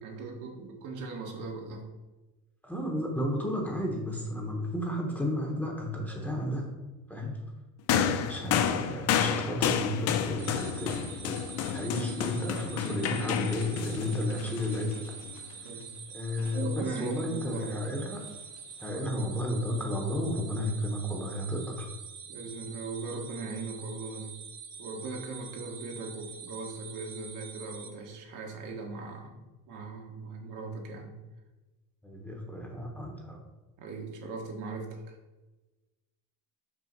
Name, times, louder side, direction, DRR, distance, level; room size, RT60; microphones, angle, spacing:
voice 1, 0.0-1.8 14.4-14.7 15.6-15.9 16.5-17.7 18.9-19.3 22.3-24.3 24.8-31.2 33.8-35.2, right 3 dB, 55° right, 1 dB, 1.3 m, -39 dB
voice 2, 2.6-6.7 7.1-7.5 7.9-15.2 16.1-18.2 18.8-21.9 32.0-33.4, left 1 dB, 5° left, -1 dB, 1.0 m, -33 dB
sound 1, 7.9-15.4 16.4-16.5, left 8 dB, 45° left, 0.5 m, -30 dB
sound 2, 10.4-27.9, right 6 dB, 80° right, 1.2 m, -45 dB
6.1 x 3.4 x 5.8 m, 1.1 s
cardioid pair, 135°, 35 cm